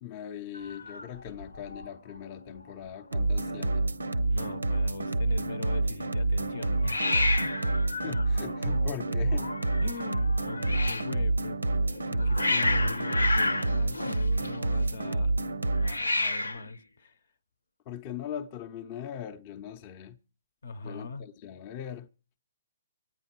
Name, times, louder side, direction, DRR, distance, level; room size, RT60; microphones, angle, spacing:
voice 1, 0.0-3.9 8.0-9.5 9.9-10.0 17.9-20.2 20.8-22.1, left 9 dB, 35° left, 0.6 m, -40 dB
Hiss, 0.5-1.9 2.2-2.6 2.9-3.0 3.2-3.8 6.8-11.1 11.9-14.8 15.8-16.7, left 2 dB, 90° left, 0.6 m, -31 dB
sound 1, 3.1-16.0, right 2 dB, 85° right, 0.6 m, -28 dB
voice 2, 4.3-7.5 9.8-15.3 15.8-17.2 20.6-21.3, left 3 dB, 65° left, 0.8 m, -41 dB
25.5 x 9.2 x 4.4 m
figure-of-eight pair, 130°, 0 cm